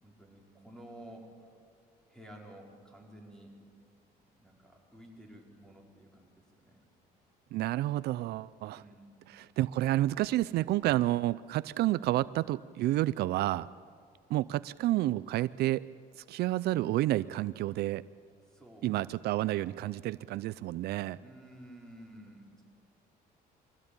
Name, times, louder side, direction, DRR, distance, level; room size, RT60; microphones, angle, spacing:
voice 1, 0.0-1.6 2.1-3.6 4.1-6.8 8.7-9.3 18.5-18.9 19.4-19.7 21.2-22.6, right 1 dB, 5° left, -1 dB, 5.2 m, -52 dB
voice 2, 7.5-8.8 9.4-13.7 14.3-15.9 16.3-18.0 18.8-21.2, right 15 dB, 75° right, 17 dB, 0.5 m, -30 dB
24.5 x 16.5 x 8.8 m, 2.1 s
cardioid pair, 110°, 17 cm